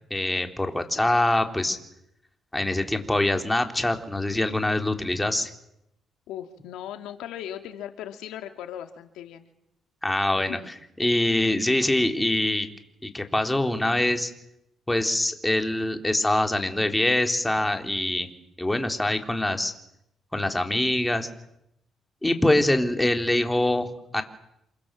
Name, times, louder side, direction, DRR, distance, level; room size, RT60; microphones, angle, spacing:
voice 1, 0.1-1.8 2.5-5.5 10.0-12.7 13.0-14.3 14.9-18.3 18.6-19.7 20.3-21.3 22.2-24.2, left 1 dB, 10° left, 5 dB, 3.7 m, -24 dB
voice 2, 6.3-9.5 10.5-10.7, left 11 dB, 90° left, 6 dB, 2.7 m, -38 dB
28.0 x 25.0 x 7.7 m, 0.79 s
cardioid pair, 90°, 0 cm